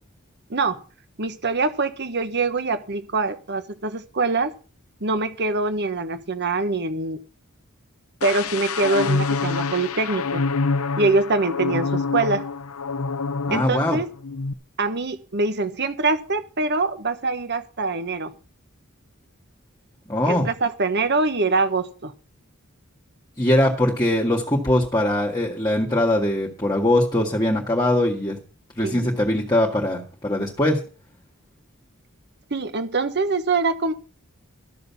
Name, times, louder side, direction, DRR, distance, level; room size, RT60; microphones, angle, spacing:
voice 1, 0.5-0.8 1.2-4.5 5.0-7.2 8.2-10.4 11.0-12.5 13.5-14.1 14.8-18.3 20.2-22.1 28.8-29.1 32.5-33.9, right 3 dB, 50° right, 10 dB, 1.4 m, -24 dB
sound 1, 8.2-13.9 14.2-14.5, left 4 dB, 85° left, 0.8 m, -26 dB
voice 2, 13.5-14.0 20.1-20.5 23.4-28.4 28.8-30.8, left 1 dB, 20° left, 0 dB, 1.9 m, -21 dB
13.0 x 6.8 x 7.0 m, 0.37 s
head